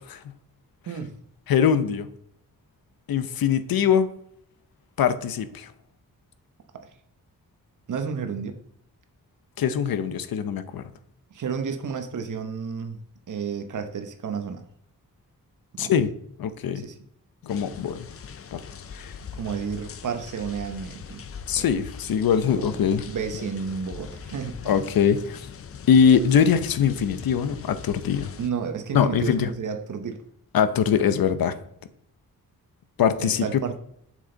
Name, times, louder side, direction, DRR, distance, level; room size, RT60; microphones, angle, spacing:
voice 1, 1.5-2.1 3.1-4.1 5.0-5.7 9.6-10.8 15.8-16.1 16.4-16.8 17.4-18.1 18.5-18.6 18.9-19.1 21.5-23.0 24.7-25.4 25.9-28.3 28.9-29.5 30.5-31.6 33.0-33.6, left 7 dB, 85° left, 12 dB, 0.7 m, -22 dB
voice 2, 7.9-8.6 11.3-13.0 13.3-14.6 15.7-15.9 16.7-17.0 19.4-21.2 21.6-21.7 22.4-24.8 28.4-30.2 33.2-33.7, right 6 dB, 60° right, 7 dB, 1.0 m, -31 dB
sound 1, 17.5-28.5, left 6 dB, 40° left, 0.5 m, -41 dB
7.7 x 6.2 x 3.9 m, 0.71 s
wide cardioid pair, 170°, 35 cm